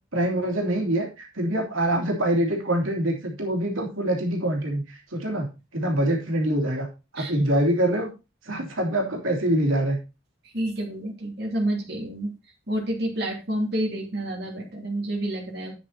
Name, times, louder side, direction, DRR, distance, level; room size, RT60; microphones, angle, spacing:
voice 1, 0.1-6.9 7.1-8.1 8.4-10.0, right 1 dB, 90° right, 0 dB, 2.9 m, -25 dB
voice 2, 10.5-12.3 12.7-15.7, right 1 dB, 55° right, -1 dB, 3.0 m, -29 dB
9.3 x 7.4 x 4.1 m, 0.28 s
head